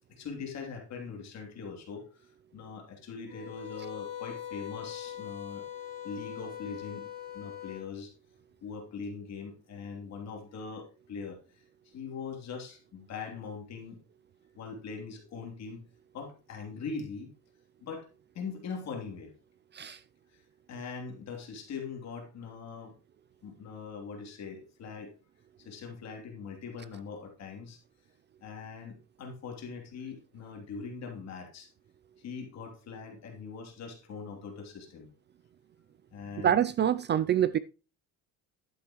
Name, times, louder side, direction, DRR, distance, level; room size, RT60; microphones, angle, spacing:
voice 1, 0.2-5.6 6.0-7.0 7.3-8.1 8.6-11.4 11.9-14.0 14.5-15.8 16.1-17.3 17.8-18.1 18.3-19.3 20.7-22.9 23.4-25.1 25.6-27.8 28.4-31.7 32.2-35.1 36.1-36.6, left 5 dB, 50° left, 3.1 m, -41 dB
sound 1, 3.3-7.9, left 11 dB, 70° left, 3.8 m, -41 dB
voice 2, 36.4-37.6, right 10 dB, 35° right, 0.4 m, -25 dB
11.5 x 8.6 x 3.0 m
cardioid pair, 135°, 34 cm